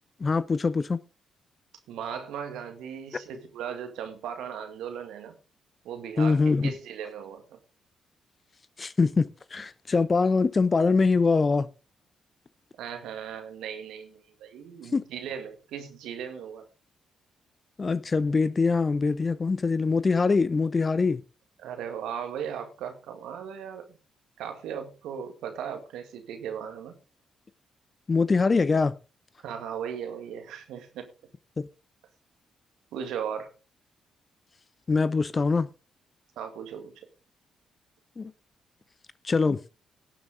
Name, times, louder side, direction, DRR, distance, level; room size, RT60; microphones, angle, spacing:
voice 1, 0.2-1.0 6.2-6.7 8.8-11.7 14.9-15.0 17.8-21.2 28.1-28.9 34.9-35.7 38.2-38.3 39.2-39.6, left 4 dB, 40° left, 0.7 m, -23 dB
voice 2, 1.9-5.4 5.8-7.6 12.8-16.7 21.6-23.9 24.4-27.0 29.4-31.1 32.9-33.5 36.4-37.1, right 8 dB, 70° right, 1.9 m, -37 dB
18.0 x 7.2 x 3.7 m
hypercardioid pair, 40°, 0 cm